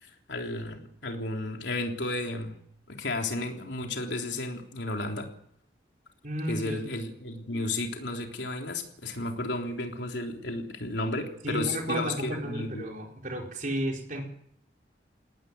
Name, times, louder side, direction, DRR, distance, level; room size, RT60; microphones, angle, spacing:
voice 1, 0.3-2.6 2.9-5.3 6.5-12.8, left 2 dB, 85° left, 3 dB, 3.5 m, -33 dB
voice 2, 6.2-6.8 11.4-14.2, right 1 dB, 45° right, 1 dB, 4.7 m, -33 dB
19.0 x 18.5 x 9.6 m, 0.72 s
head